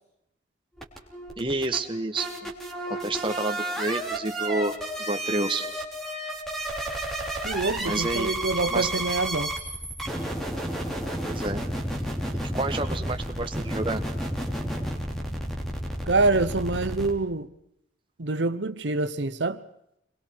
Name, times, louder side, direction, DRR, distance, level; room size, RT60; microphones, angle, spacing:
sound 1, 0.8-17.1, right 1 dB, ahead, 3.1 m, -32 dB
voice 1, 1.4-2.5 2.9-4.7 5.1-5.6 7.8-8.3 8.7-8.9 11.2-11.6 12.5-14.0, right 2 dB, 30° right, 1.6 m, -29 dB
voice 2, 7.4-9.5 16.1-17.5 18.2-19.6, right 3 dB, 80° right, 1.0 m, -26 dB
28.5 x 22.0 x 4.7 m
head